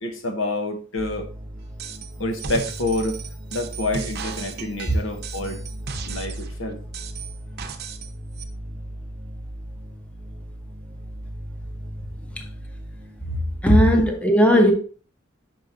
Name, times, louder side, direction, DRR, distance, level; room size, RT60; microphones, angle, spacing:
voice 1, 0.0-1.3 2.2-3.2 3.5-5.6 6.0-6.8 13.9-14.1 14.5-14.7, left 1 dB, 75° left, 1.1 m, -27 dB
sound 1, 1.0-14.1, equal, 20° right, 0.5 m, -37 dB
sound 2, 1.8-2.1 2.4-6.5 6.9-8.1 8.4-8.5, right 6 dB, 55° right, 0.8 m, -35 dB
voice 2, 13.3-14.7, equal, 5° left, 0.8 m, -17 dB
5.6 x 4.7 x 3.9 m
head